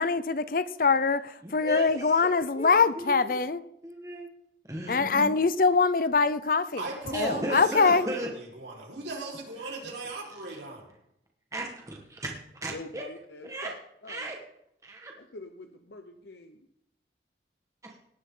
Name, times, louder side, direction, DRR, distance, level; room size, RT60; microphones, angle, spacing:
voice 1, 0.0-3.6 4.9-6.8 7.1-8.1, left 4 dB, 50° left, 15 dB, 0.6 m, -24 dB
voice 2, 1.4-3.3 3.8-4.3 4.6-5.3 7.1-8.3 9.6-9.7 10.5-10.6 11.5-13.1 13.4-13.7 14.1-14.4 14.8-15.1 17.8-17.9, right 1 dB, 20° right, 0 dB, 1.5 m, -36 dB
voice 3, 6.8-10.9, right 2 dB, 90° right, -1 dB, 4.8 m, -38 dB
voice 4, 12.7-13.7 14.0-14.3 15.2-16.7, left 2 dB, 75° left, 6 dB, 0.9 m, -45 dB
18.0 x 11.0 x 3.8 m, 0.76 s
head